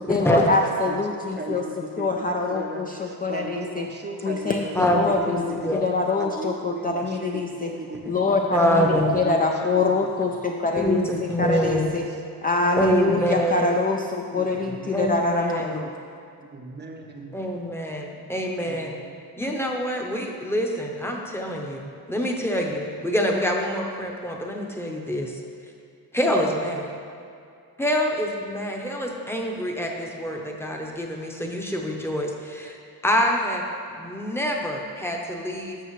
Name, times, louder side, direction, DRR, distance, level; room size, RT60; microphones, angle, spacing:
voice 1, 0.1-1.6 2.0-3.9 4.2-5.4 5.7-7.7 8.1-12.1 12.4-15.9, left 3 dB, 25° left, 1 dB, 0.3 m, -25 dB
voice 2, 0.7-5.7 6.1-8.4 8.8-10.3 11.1-12.2 13.0-13.4 14.4-15.1 16.4-17.3 18.6-19.2, right 2 dB, 30° right, 2 dB, 0.6 m, -37 dB
voice 3, 4.7-5.8 8.3-9.1 10.8-11.9 12.8-13.7 14.9-15.8 17.3-18.9 19.4-25.3 26.1-26.9 27.8-32.8 33.0-33.6 34.0-35.8, equal, 5° left, 0 dB, 0.8 m, -25 dB
12.5 x 6.6 x 3.1 m, 2.4 s
wide cardioid pair, 160°, 38 cm